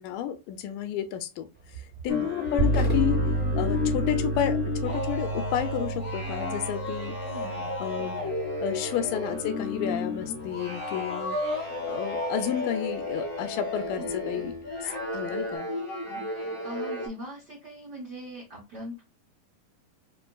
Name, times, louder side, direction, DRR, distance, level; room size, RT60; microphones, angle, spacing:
voice 1, 0.0-1.5 1.7-3.2 3.6-7.2 7.8-8.2 8.6-11.4 11.9-14.6 14.8-15.7, left 9 dB, 85° left, 2.1 m, -31 dB
sound 1, 1.5-6.4, right 2 dB, 5° left, 0.8 m, -43 dB
sound 2, 2.1-17.1, left 3 dB, 60° left, 0.5 m, -33 dB
sound 3, 2.6-10.3, right 1 dB, 35° right, 0.5 m, -31 dB
voice 2, 7.2-7.7 14.0-14.1 16.1-19.0, equal, 85° right, 0.9 m, -41 dB
5.3 x 2.5 x 2.2 m
omnidirectional pair, 3.9 m